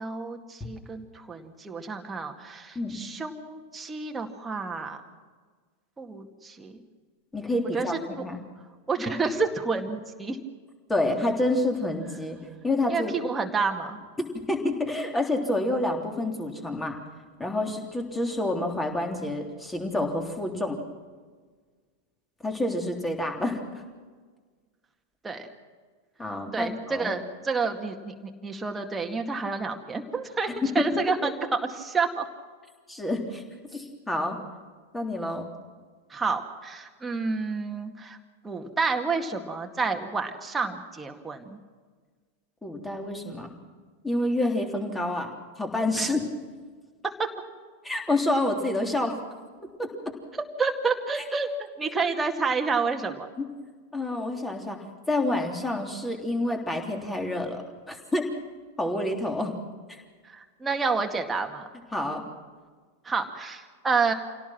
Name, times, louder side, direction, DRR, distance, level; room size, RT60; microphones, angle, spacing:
voice 1, 0.0-5.0 6.0-6.8 7.7-7.9 8.2-8.3 8.9-10.4 12.9-14.0 25.2-25.5 26.5-30.5 30.7-32.2 36.1-38.2 38.4-41.6 46.0-46.1 47.0-47.3 50.3-53.3 60.2-61.7 63.0-64.1, right 4 dB, 15° right, 3 dB, 2.1 m, -29 dB
voice 2, 7.3-8.4 10.9-12.4 12.6-13.1 14.2-16.9 17.4-20.8 22.4-23.8 26.2-27.1 30.6-30.7 31.2-31.3 32.9-33.4 33.7-34.4 34.9-35.5 42.6-43.5 44.0-45.3 45.6-46.2 47.8-49.1 49.8-50.1 53.4-53.5 53.9-58.3 58.8-59.6 59.9-60.0 61.9-62.2, left 1 dB, 10° left, 3 dB, 3.4 m, -28 dB
27.0 x 17.5 x 6.1 m, 1.5 s
figure-of-eight pair, 90°, 0 cm